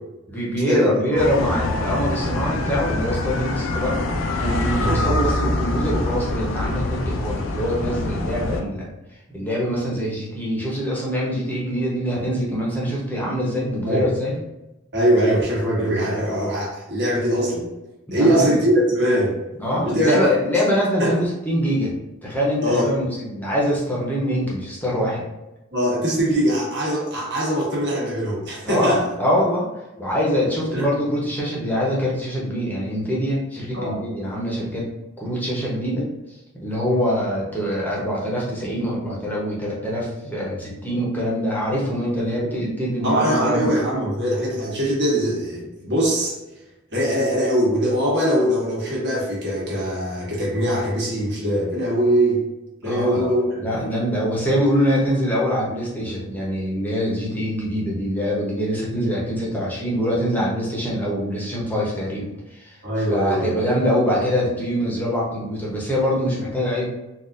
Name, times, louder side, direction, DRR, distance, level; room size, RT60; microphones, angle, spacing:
voice 1, 0.3-4.0 4.4-8.9 9.3-14.4 18.1-18.6 19.6-21.9 22.2-25.2 28.6-29.7 30.0-34.9 35.2-36.1 36.5-43.7 52.8-53.2 53.6-62.8 63.1-66.9, equal, 10° left, -5 dB, 0.8 m, -24 dB
sound 1, 1.2-8.6, left 2 dB, 65° left, 0.4 m, -25 dB
voice 2, 14.9-17.7 18.1-19.3 19.8-20.3 21.0-21.2 22.6-23.0 25.7-29.1 30.7-30.9 33.7-34.0 42.3-42.5 43.0-46.4 46.9-52.4 52.8-53.7 62.8-63.6, equal, 55° right, -4 dB, 1.3 m, -22 dB
4.0 x 2.5 x 2.5 m, 0.97 s
head